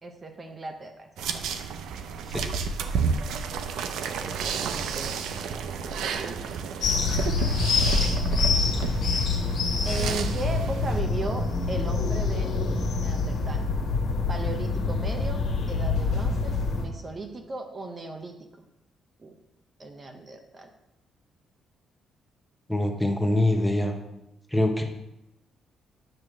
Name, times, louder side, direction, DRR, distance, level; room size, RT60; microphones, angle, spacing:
voice 1, 0.0-1.4 4.2-5.6 5.8-6.6 9.8-12.5 13.0-13.6 14.3-15.4 15.7-18.4 19.2-19.4 19.8-20.7, right 3 dB, 35° right, 4 dB, 0.8 m, -37 dB
sound 1, 1.2-11.0, right 4 dB, 80° right, 0.5 m, -30 dB
sound 2, 6.8-16.8, left 4 dB, 75° left, 1.5 m, -26 dB
voice 2, 22.7-23.9 24.5-24.8, left 1 dB, 5° left, 3 dB, 1.0 m, -24 dB
8.9 x 3.1 x 6.2 m, 0.88 s
cardioid pair, 90°, 0 cm